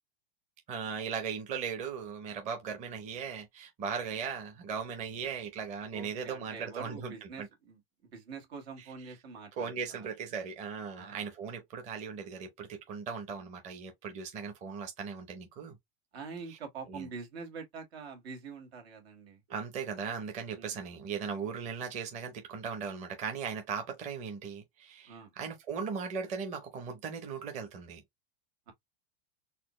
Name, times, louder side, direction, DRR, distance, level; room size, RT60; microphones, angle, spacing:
voice 1, 0.7-7.3 9.6-15.7 16.9-17.1 19.5-28.0, right 6 dB, 25° right, 0.7 m, -38 dB
voice 2, 5.9-10.1 11.0-11.6 16.1-19.4 20.5-20.8 25.1-25.3 28.7-28.8, right 5 dB, 80° right, 2.0 m, -45 dB
4.2 x 2.1 x 3.1 m
supercardioid pair, 160°, 31 cm